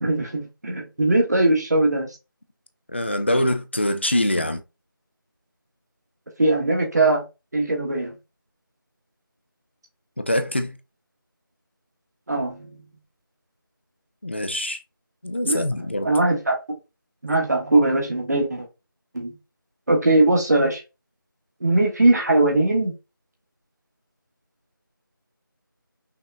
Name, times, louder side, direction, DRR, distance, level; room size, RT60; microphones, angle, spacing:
voice 1, 0.0-2.2 6.4-7.2 7.5-8.1 12.3-12.8 15.4-15.6 16.0-16.6 17.2-18.7 19.1-19.3 19.9-20.8 21.6-22.9, right 2 dB, 50° right, 1.4 m, -20 dB
voice 2, 2.9-4.6 10.2-10.8 14.2-14.8 15.2-16.2, left 1 dB, 30° left, 0.4 m, -24 dB
5.4 x 2.8 x 2.4 m
figure-of-eight pair, 170°, 12 cm